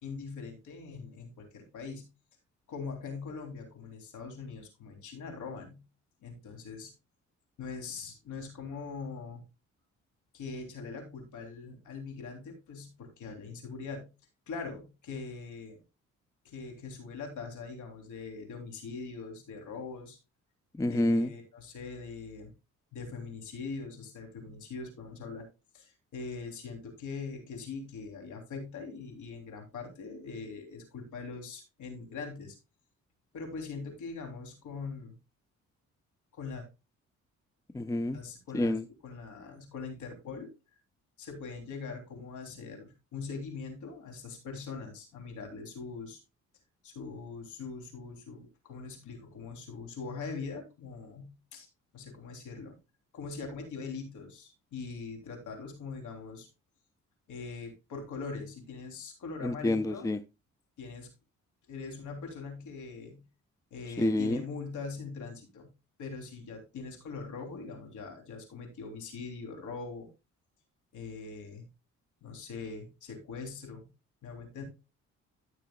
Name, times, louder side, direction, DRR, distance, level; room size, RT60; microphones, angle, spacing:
voice 1, 0.0-2.0 2.7-5.8 6.2-6.9 7.6-9.4 10.3-14.1 14.5-15.8 16.4-20.2 20.9-22.5 22.9-25.5 25.7-32.6 33.3-35.2 36.3-36.6 38.1-40.5 41.2-46.2 46.8-51.7 51.9-52.8 53.1-56.5 57.3-60.1 60.8-61.1 61.7-63.2 63.7-65.7 66.0-70.1 70.9-71.6 72.2-73.9 74.2-74.6, left 4 dB, 75° left, 3.2 m, -42 dB
voice 2, 20.8-21.3 37.7-38.2 38.5-38.8 59.4-60.2 64.0-64.4, left 1 dB, 10° left, 0.5 m, -28 dB
14.0 x 6.8 x 2.3 m
cardioid pair, 90°, 30 cm